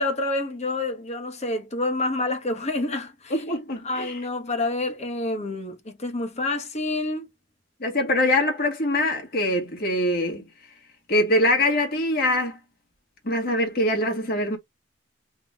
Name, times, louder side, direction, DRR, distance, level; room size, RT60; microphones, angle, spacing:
voice 1, 0.0-7.2, left 2 dB, 35° left, 1.1 m, -28 dB
voice 2, 3.3-4.2 7.8-10.4 11.1-12.6 13.2-14.6, left 1 dB, 55° left, 1.9 m, -23 dB
3.7 x 2.9 x 3.6 m
head